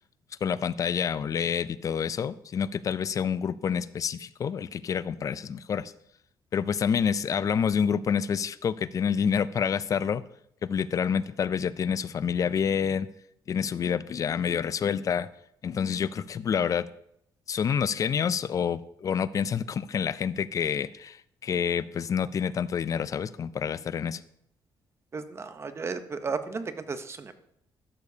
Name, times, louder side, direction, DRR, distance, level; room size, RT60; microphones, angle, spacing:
voice 1, 0.4-5.9 6.5-10.2 10.6-13.1 13.5-15.3 15.6-16.9 17.5-24.2, left 7 dB, 40° left, 17 dB, 0.3 m, -28 dB
voice 2, 25.1-27.3, right 4 dB, 30° right, 11 dB, 0.6 m, -34 dB
12.5 x 6.7 x 2.7 m, 0.75 s
cardioid pair, 120°, 9 cm